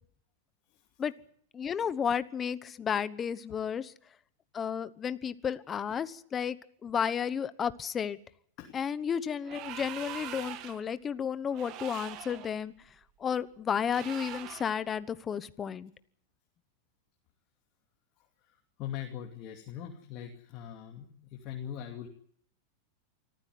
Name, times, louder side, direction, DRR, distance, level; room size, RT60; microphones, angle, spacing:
voice 1, 1.5-3.9 4.5-6.6 6.8-8.2 8.7-12.7 13.2-15.9, left 7 dB, 20° left, 15 dB, 1.1 m, -32 dB
sound 1, 9.4-10.9 11.5-12.5 13.9-14.8, right 11 dB, 45° right, 2.0 m, -43 dB
voice 2, 18.4-22.1, left 10 dB, 40° left, 2 dB, 2.6 m, -41 dB
25.0 x 14.5 x 9.5 m, 0.64 s
supercardioid pair, 135°, 0 cm